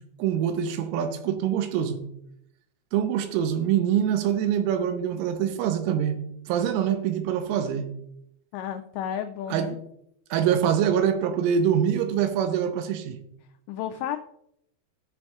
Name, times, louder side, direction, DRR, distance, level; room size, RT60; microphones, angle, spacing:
voice 1, 0.2-2.0 2.9-6.2 6.5-7.9 9.5-9.7 10.3-13.2, right 9 dB, 90° right, 3.2 m, -24 dB
voice 2, 8.5-9.8 13.7-14.2, left 10 dB, 90° left, 2.5 m, -32 dB
15.5 x 6.0 x 2.3 m
omnidirectional pair, 5.6 m